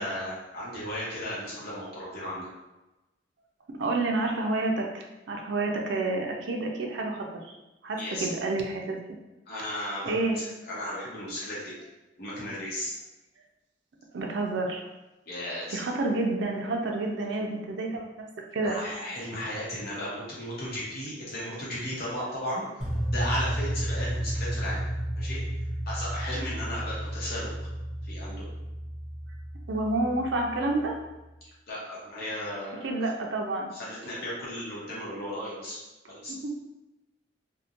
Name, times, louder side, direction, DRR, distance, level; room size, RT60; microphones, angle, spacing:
voice 1, 0.0-2.5 8.0-8.3 9.5-10.3 10.7-11.7 12.2-12.9 15.3-15.8 18.6-22.9 23.1-24.8 25.2-25.4 25.9-27.5 28.0-28.3 31.7-33.0 33.7-35.8 36.1-36.3, equal, 55° left, -7 dB, 0.8 m, -35 dB
voice 2, 3.7-7.6 7.8-9.0 10.1-10.4 14.1-14.8 15.7-18.3 18.5-18.8 29.7-31.0 32.8-33.7 36.4-36.5, right 2 dB, 70° right, 1 dB, 0.4 m, -29 dB
sound 1, 22.8-30.9, right 1 dB, 5° right, 0.5 m, -33 dB
2.8 x 2.1 x 2.5 m, 1.0 s
head